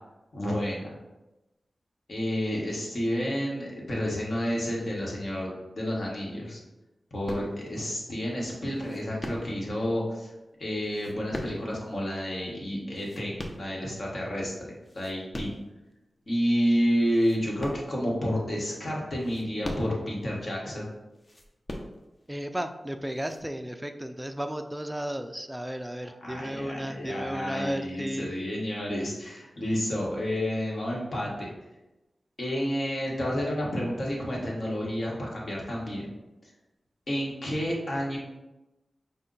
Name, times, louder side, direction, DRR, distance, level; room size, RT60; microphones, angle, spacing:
voice 1, 0.3-0.9 2.1-6.6 7.1-10.3 10.6-14.5 14.9-15.5 16.3-20.9 26.2-31.5 32.4-36.1 37.1-38.2, equal, 60° left, -3 dB, 1.3 m, -30 dB
sound 1, 7.3-7.9 8.7-9.8 10.8-12.0 12.7-14.1 14.6-15.7 16.3-16.4 17.0-18.3 19.1-20.2 21.1-22.3 23.1-23.4, left 1 dB, 35° left, 0.6 m, -40 dB
voice 2, 22.3-28.3, equal, 10° right, 6 dB, 0.3 m, -34 dB
5.3 x 2.2 x 3.9 m, 1.0 s
wide cardioid pair, 65°, 0 cm